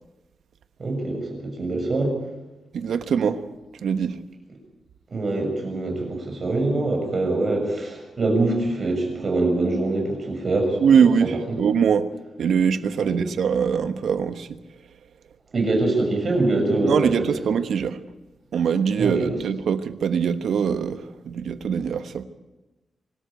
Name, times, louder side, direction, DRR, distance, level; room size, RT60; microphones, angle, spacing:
voice 1, 0.8-2.1 5.1-11.3 13.0-13.2 15.5-17.3 19.0-19.4, right 2 dB, 35° right, 6.8 m, -24 dB
voice 2, 2.7-3.4 3.8-4.1 10.8-12.1 12.4-14.5 16.8-18.0 18.5-22.2, right 7 dB, 80° right, 1.2 m, -22 dB
25.0 x 13.0 x 9.2 m
wide cardioid pair, 155°, 0 cm